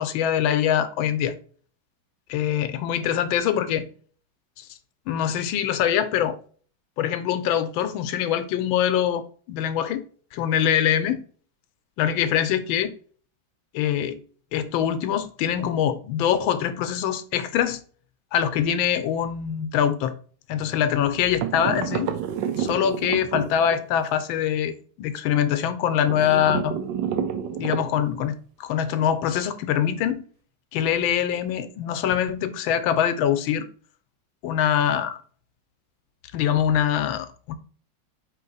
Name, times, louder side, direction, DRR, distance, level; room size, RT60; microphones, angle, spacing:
voice 1, 0.0-1.4 2.3-3.9 4.6-4.7 5.1-6.4 7.0-10.0 10.3-11.2 12.0-13.0 13.7-14.2 14.5-17.8 18.3-20.1 20.5-22.1 22.6-26.7 27.6-30.2 30.7-33.7 34.4-35.2 36.3-37.6, left 9 dB, 85° left, 1.4 m, -24 dB
sound 1, 21.4-24.0 26.0-28.3, right 8 dB, 75° right, 1.1 m, -29 dB
4.5 x 2.9 x 3.9 m
omnidirectional pair, 2.1 m